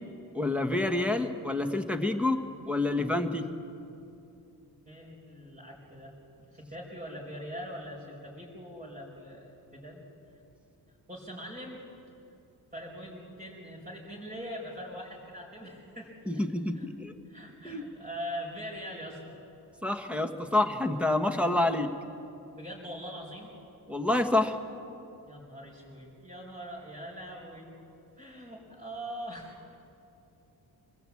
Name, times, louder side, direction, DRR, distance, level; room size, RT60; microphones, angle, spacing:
voice 1, 0.3-3.5 16.3-17.1 17.6-17.8 19.8-21.9 23.9-24.6, left 2 dB, 5° right, 6 dB, 1.4 m, -28 dB
voice 2, 4.9-10.0 11.1-11.8 12.7-16.1 16.7-16.8 17.2-19.3 22.5-23.5 25.2-27.8 28.2-29.8, equal, 20° right, -6 dB, 4.9 m, -42 dB
25.5 x 20.5 x 8.5 m, 2.7 s
wide cardioid pair, 150°, 40 cm